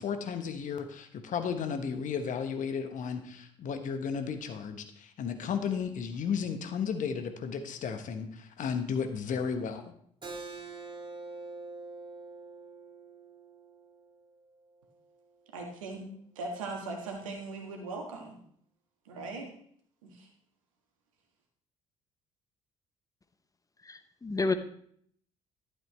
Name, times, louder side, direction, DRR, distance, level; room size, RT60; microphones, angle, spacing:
voice 1, 0.0-9.9, left 6 dB, 50° left, 8 dB, 1.1 m, -34 dB
Keyboard (musical), 10.2-15.4, right 3 dB, 30° right, 2.1 m, -46 dB
voice 2, 15.5-16.0 16.3-18.4 19.1-19.5 20.0-20.3, right 3 dB, 75° right, 2 dB, 1.6 m, -39 dB
voice 3, 23.9-24.5, left 3 dB, 20° left, 10 dB, 0.8 m, -30 dB
12.0 x 7.9 x 3.2 m, 0.64 s
figure-of-eight pair, 50°, 17 cm